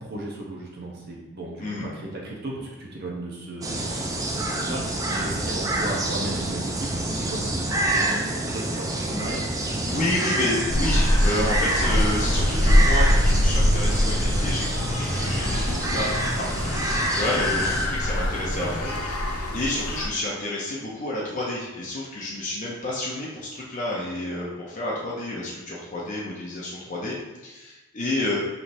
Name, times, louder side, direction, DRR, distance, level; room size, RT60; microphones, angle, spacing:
voice 1, 0.0-9.4 18.4-18.8, right 1 dB, 50° right, -3 dB, 0.8 m, -35 dB
sound 1, 3.6-17.9, right 1 dB, 15° right, 0.3 m, -28 dB
voice 2, 9.8-16.8 17.1-28.4, left 1 dB, 35° left, -5 dB, 0.6 m, -30 dB
sound 2, 10.7-20.1, left 1 dB, 85° left, 0.7 m, -23 dB
5.4 x 3.0 x 2.6 m, 1.2 s
head